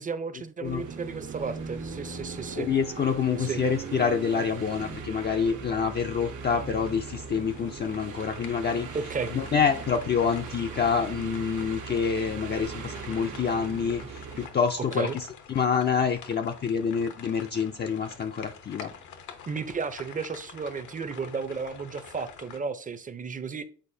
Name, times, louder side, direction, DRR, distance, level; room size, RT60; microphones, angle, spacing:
voice 1, 0.0-2.7 3.4-3.6 8.9-9.3 15.0-15.2 19.5-23.6, right 5 dB, 25° right, 0.6 m, -33 dB
sound 1, 0.6-14.5, right 5 dB, 90° right, 1.3 m, -39 dB
voice 2, 2.5-8.9 9.3-18.9, left 6 dB, 35° left, 0.5 m, -27 dB
sound 2, 6.9-22.6, left 7 dB, 75° left, 0.9 m, -48 dB
9.0 x 4.0 x 2.7 m
cardioid pair, 90°, 30 cm